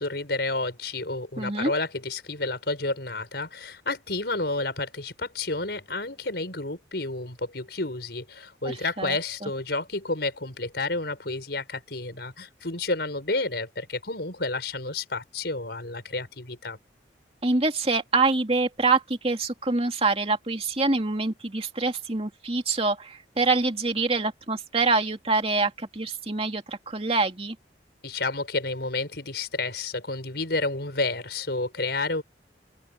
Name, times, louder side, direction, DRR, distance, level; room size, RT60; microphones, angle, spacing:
voice 1, 0.0-16.8 28.0-32.2, left 2 dB, 65° left, 5.4 m, -30 dB
voice 2, 1.4-1.7 8.6-9.2 9.4-9.5 17.4-27.6, right 3 dB, 35° right, 2.6 m, -25 dB
open air
head